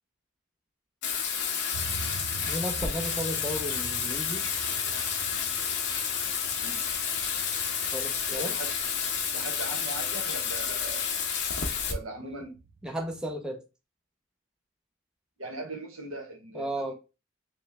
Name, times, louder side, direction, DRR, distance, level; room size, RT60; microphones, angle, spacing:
Bathtub (filling or washing), 1.0-11.9, left 7 dB, 55° left, 0.7 m, -30 dB
sound 1, 1.7-13.3, right 4 dB, 65° right, 0.4 m, -46 dB
voice 1, 2.5-4.4 7.9-8.5 12.8-13.6 16.5-16.9, right 1 dB, 5° right, 0.4 m, -34 dB
voice 2, 8.3-8.7 9.3-11.1 11.9-12.6 15.4-16.9, right 2 dB, 85° right, 1.1 m, -39 dB
3.1 x 3.0 x 3.4 m
head